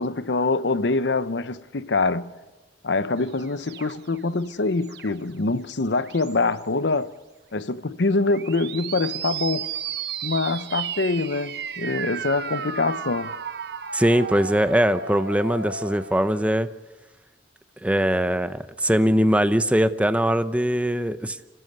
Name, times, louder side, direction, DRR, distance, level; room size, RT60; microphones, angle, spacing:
voice 1, 0.0-2.3 2.8-7.1 7.5-9.7 10.2-13.4, left 3 dB, 85° left, 0.8 m, -24 dB
sound 1, 3.2-5.4 5.9-6.6 8.2-16.5, right 7 dB, 65° right, 1.0 m, -34 dB
voice 2, 13.9-16.7 17.8-21.4, equal, 10° right, 0.8 m, -21 dB
26.0 x 15.5 x 8.1 m
head